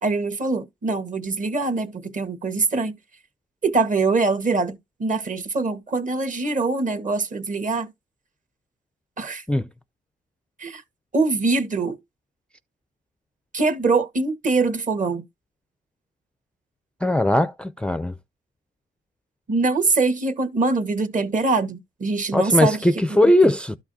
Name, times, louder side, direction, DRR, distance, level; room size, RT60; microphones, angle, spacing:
voice 1, 0.0-3.0 3.6-7.9 9.2-9.4 10.6-10.8 11.1-12.0 13.5-15.2 19.5-22.8 23.4-23.5, right 3 dB, 40° right, 1.6 m, -23 dB
voice 2, 17.0-18.2 22.3-23.8, left 1 dB, 5° left, 0.4 m, -19 dB
12.5 x 4.7 x 2.7 m
cardioid pair, 90°, 20 cm